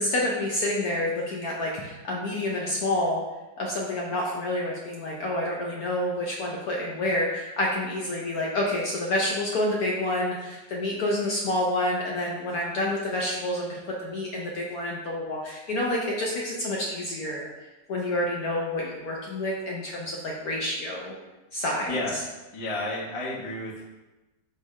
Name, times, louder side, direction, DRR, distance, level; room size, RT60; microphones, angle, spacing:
voice 1, 0.0-3.2 3.6-17.5 17.9-21.1 21.5-21.9, left 1 dB, 70° left, -3 dB, 0.9 m, -28 dB
voice 2, 21.9-22.2 22.5-23.8, left 1 dB, 45° left, -6 dB, 0.4 m, -31 dB
4.4 x 2.0 x 4.6 m, 1.1 s
omnidirectional pair, 2.0 m